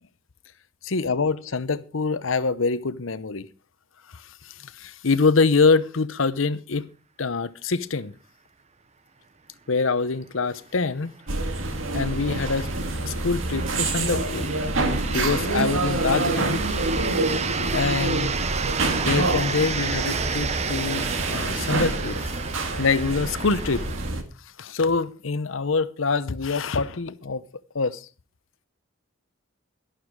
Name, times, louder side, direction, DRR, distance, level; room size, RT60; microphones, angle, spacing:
voice 1, 0.8-3.5 4.1-6.9 7.2-8.1 9.7-11.2 11.9-12.7 13.0-14.6 15.1-16.6 17.7-18.3 18.9-22.3 22.8-23.9 24.6-27.4 27.7-28.1, left 4 dB, 80° left, 0.8 m, -25 dB
sound 1, 10.0-10.1 10.4-10.5 11.3-24.1, right 5 dB, 35° right, 0.8 m, -32 dB
sound 2, 11.3-24.2, right 2 dB, 80° right, 1.8 m, -27 dB
11.5 x 11.5 x 4.7 m
head